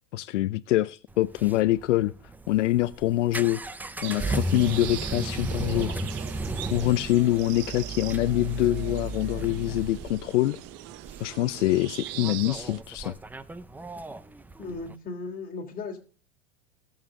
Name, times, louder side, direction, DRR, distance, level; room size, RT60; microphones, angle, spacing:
voice 1, 0.1-2.1 2.5-3.6 4.0-6.0 6.7-10.6 11.2-13.1, left 16 dB, 75° left, 14 dB, 0.6 m, -25 dB
sound 1, 1.1-14.9, right 2 dB, 5° right, 0.4 m, -35 dB
sound 2, 4.0-12.8, right 16 dB, 45° right, 0.7 m, -41 dB
voice 2, 14.6-16.0, left 3 dB, 25° left, 2 dB, 3.3 m, -36 dB
19.5 x 7.3 x 3.7 m, 0.39 s
hypercardioid pair, 115°, 36 cm